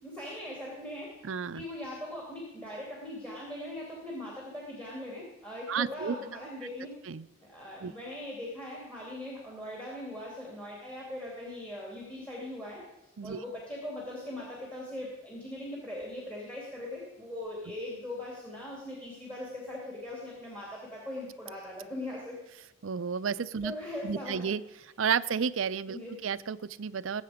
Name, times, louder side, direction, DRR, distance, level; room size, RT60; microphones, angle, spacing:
voice 1, 0.0-6.9 7.5-12.8 13.2-22.4 23.6-24.5 25.9-26.2, left 1 dB, 5° left, -3 dB, 2.6 m, -40 dB
voice 2, 1.2-1.6 5.7-6.1 7.1-7.3 7.8-7.9 13.2-13.4 22.8-23.7 24.0-24.6 25.0-27.2, right 6 dB, 75° right, 16 dB, 0.5 m, -31 dB
20.0 x 8.1 x 5.0 m, 0.92 s
head